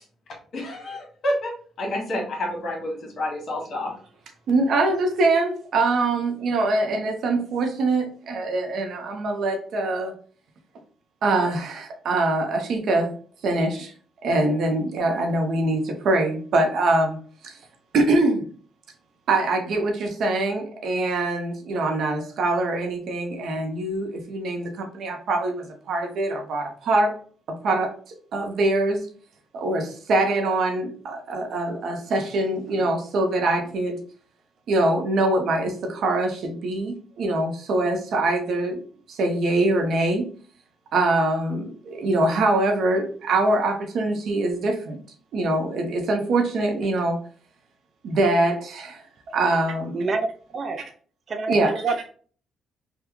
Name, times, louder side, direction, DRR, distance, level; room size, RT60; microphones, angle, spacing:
voice 1, 0.5-3.9, left 1 dB, 60° left, 0 dB, 1.6 m, -29 dB
voice 2, 4.5-10.1 11.2-13.1 13.4-13.9 14.2-17.2 17.4-17.5 17.9-18.4 19.3-27.1 27.5-27.9 28.3-29.1 29.5-34.0 34.7-38.8 39.1-40.3 40.9-45.0 45.3-47.2 48.0-49.0 49.3-50.0 51.5-51.7, right 2 dB, 70° right, 4 dB, 0.8 m, -23 dB
voice 3, 49.9-50.8 51.3-52.1, right 3 dB, 45° right, 6 dB, 0.5 m, -27 dB
3.5 x 2.3 x 3.0 m, 0.43 s
cardioid pair, 85°, 0 cm